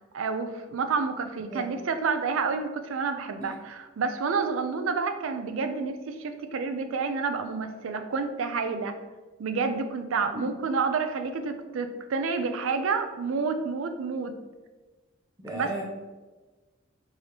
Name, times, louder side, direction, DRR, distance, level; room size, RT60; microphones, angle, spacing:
voice 1, 0.1-9.0 9.4-14.4 15.5-15.7, right 5 dB, 75° right, 8 dB, 0.4 m, -29 dB
voice 2, 15.4-15.8, right 1 dB, 15° right, -3 dB, 0.5 m, -35 dB
4.7 x 2.8 x 2.9 m, 1.2 s
head